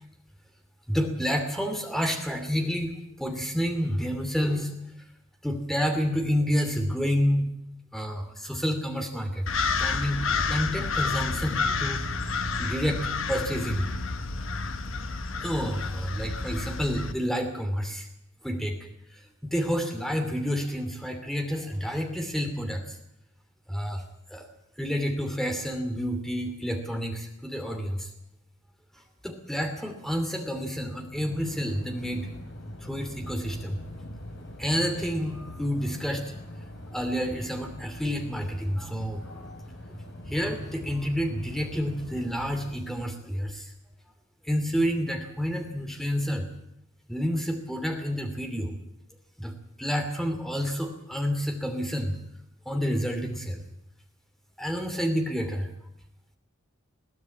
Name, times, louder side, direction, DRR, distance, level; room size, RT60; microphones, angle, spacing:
voice 1, 0.9-2.9 3.2-4.7 5.4-7.5 7.9-9.5 9.8-10.2 10.5-12.0 12.6-13.9 15.4-18.1 18.4-18.8 19.1-23.0 23.7-24.0 24.3-24.5 24.8-28.1 29.2-32.3 32.8-33.8 34.6-36.3 36.9-39.2 40.3-43.7 44.4-46.4 47.1-48.8 49.4-49.5 49.8-52.1 52.7-53.6 54.6-55.7, equal, ahead, 5 dB, 2.7 m, -29 dB
sound 1, 9.5-17.1, left 4 dB, 75° left, 1.2 m, -30 dB
sound 2, 31.1-42.8, left 1 dB, 55° left, 4.5 m, -42 dB
21.5 x 15.5 x 8.5 m, 0.82 s
head